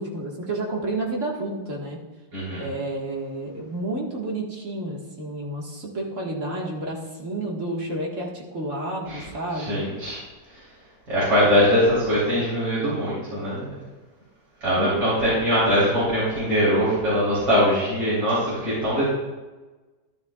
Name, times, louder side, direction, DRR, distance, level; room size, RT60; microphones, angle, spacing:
voice 1, 0.0-2.0 2.6-9.8 11.7-12.0 14.8-15.3, right 2 dB, 50° right, -2 dB, 2.1 m, -30 dB
voice 2, 2.3-2.7 9.1-9.2 9.6-10.2 11.1-13.7 14.6-19.0, equal, 85° right, -10 dB, 4.5 m, -22 dB
14.0 x 11.5 x 2.4 m, 1.2 s
omnidirectional pair, 1.8 m